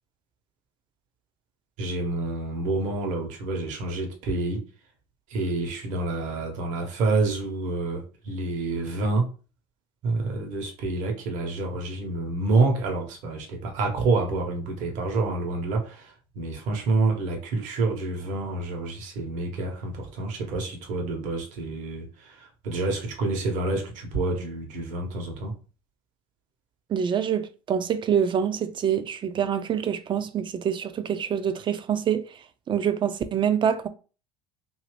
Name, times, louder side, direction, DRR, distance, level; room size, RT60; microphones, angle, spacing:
voice 1, 1.8-4.6 5.3-9.3 10.0-25.5, right 3 dB, 60° right, 1.1 m, -28 dB
voice 2, 26.9-32.2 32.7-33.9, right 8 dB, 35° right, 0.5 m, -25 dB
2.8 x 2.7 x 3.2 m
hypercardioid pair, 75°, 14 cm